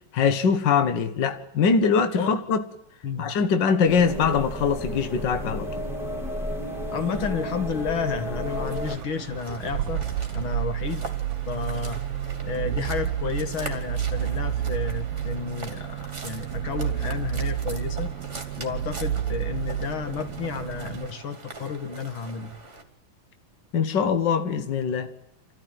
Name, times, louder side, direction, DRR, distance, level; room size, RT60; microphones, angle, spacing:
voice 1, 0.1-2.6 3.2-5.7 23.7-25.1, left 6 dB, 75° left, 1.0 m, -22 dB
sound 1, 3.9-9.0, equal, ahead, 2.2 m, -32 dB
voice 2, 6.9-11.1 11.5-12.0 12.4-18.1 18.6-22.5, left 5 dB, 45° left, 2.2 m, -31 dB
sound 2, 8.4-22.8, right 2 dB, 20° right, 2.5 m, -42 dB
sound 3, 9.0-21.1, right 10 dB, 90° right, 2.7 m, -30 dB
29.0 x 14.0 x 9.2 m
omnidirectional pair, 3.9 m